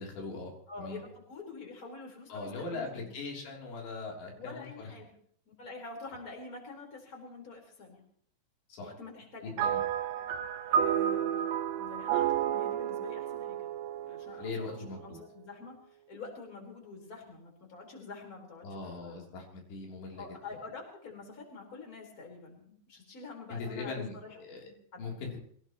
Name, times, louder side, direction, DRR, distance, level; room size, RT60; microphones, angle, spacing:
voice 1, 0.0-0.5 0.8-1.0 2.3-4.9 8.7-8.9 9.6-9.8 14.4-15.2 18.6-20.2 23.5-24.6 25.0-25.4, left 3 dB, 85° left, -1 dB, 5.7 m, -40 dB
voice 2, 0.7-3.1 4.3-5.1 5.5-8.0 8.8-9.9 10.7-11.4 11.8-13.7 14.0-19.2 20.2-24.4 24.6-25.1, left 3 dB, 20° left, 0 dB, 4.6 m, -47 dB
sound 1, 9.6-15.1, right 9 dB, 85° right, 3.3 m, -31 dB
25.0 x 17.5 x 3.1 m, 0.63 s
omnidirectional pair, 4.9 m